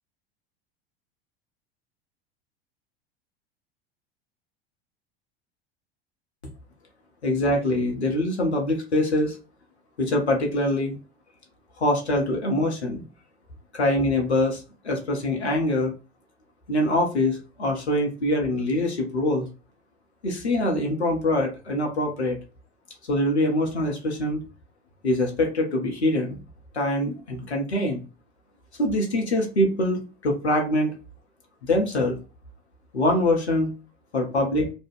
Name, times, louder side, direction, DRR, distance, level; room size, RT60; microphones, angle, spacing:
voice 1, 7.2-9.4 10.0-11.0 11.8-13.0 13.7-15.9 16.7-19.5 20.2-22.4 23.1-24.4 25.0-26.4 26.7-28.0 28.8-30.9 31.7-32.1 32.9-33.7 34.1-34.7, left 1 dB, 85° left, 1 dB, 0.7 m, -24 dB
2.5 x 2.1 x 3.4 m, 0.33 s
figure-of-eight pair, 80°, 32 cm